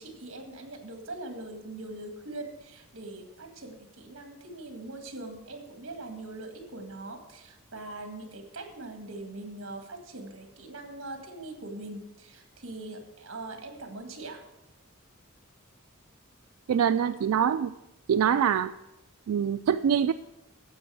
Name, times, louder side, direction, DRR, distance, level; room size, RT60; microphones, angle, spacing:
voice 1, 0.0-14.5, right 2 dB, 60° right, 5 dB, 1.8 m, -42 dB
voice 2, 16.7-17.7 18.1-18.7 19.3-20.1, right 8 dB, 85° right, 10 dB, 0.3 m, -24 dB
9.6 x 7.7 x 6.3 m, 0.97 s
head